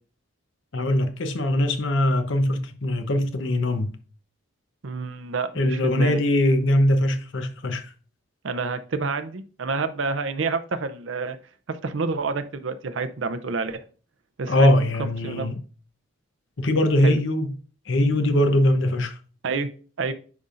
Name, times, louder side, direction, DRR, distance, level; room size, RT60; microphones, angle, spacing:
voice 1, 0.7-3.9 5.6-7.8 14.5-15.5 16.6-17.5 17.9-19.2, left 1 dB, 60° left, 0.8 m, -21 dB
voice 2, 4.8-6.2 8.4-11.4 11.7-13.8 14.4-14.7 15.2-15.5 17.0-17.2 19.4-19.7 20.0-20.1, right 4 dB, 60° right, 0.6 m, -28 dB
9.4 x 5.3 x 2.5 m
head